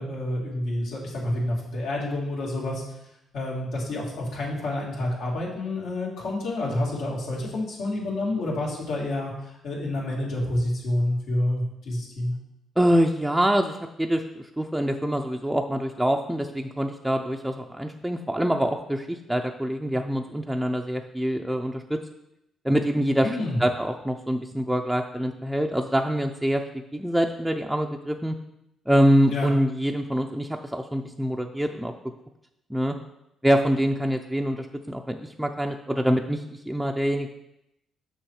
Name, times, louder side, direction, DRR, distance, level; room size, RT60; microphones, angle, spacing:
voice 1, 0.0-2.8 3.3-9.3 9.6-12.3 23.2-23.6 29.3-29.5, left 1 dB, 75° left, -4 dB, 2.7 m, -28 dB
voice 2, 12.8-22.0 22.6-28.4 28.9-31.9 32.7-32.9 33.4-37.3, equal, 5° right, 2 dB, 0.5 m, -25 dB
6.3 x 6.3 x 4.8 m, 0.85 s
cardioid pair, 90°, 0 cm